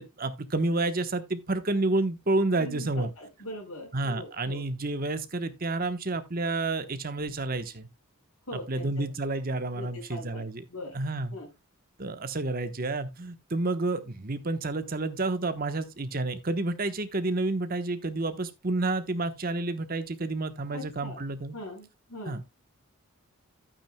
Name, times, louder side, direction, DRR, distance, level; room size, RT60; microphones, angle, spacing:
voice 1, 0.0-3.1 3.9-7.9 8.7-10.6 10.9-11.4 12.0-21.6 22.3-22.4, right 2 dB, 40° right, 1.0 m, -30 dB
voice 2, 2.5-4.6 8.5-9.0 9.7-10.4 10.7-10.9 11.3-11.5 20.7-21.2 21.5-22.4, left 1 dB, 85° left, 4.9 m, -41 dB
12.0 x 8.9 x 2.2 m
head